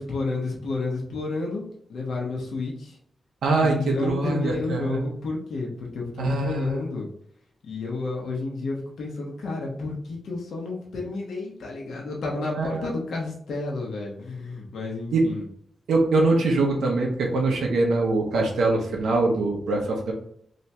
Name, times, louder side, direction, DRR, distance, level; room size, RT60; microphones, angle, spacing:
voice 1, 0.0-1.6 1.9-3.0 3.6-7.1 7.6-15.4, left 3 dB, 80° left, -2 dB, 0.9 m, -31 dB
voice 2, 3.4-5.0 6.2-6.8 12.6-12.9 15.1-15.2 15.9-20.1, right 3 dB, 90° right, 0 dB, 0.7 m, -23 dB
2.9 x 2.9 x 3.3 m, 0.67 s
cardioid pair, 70°, 0 cm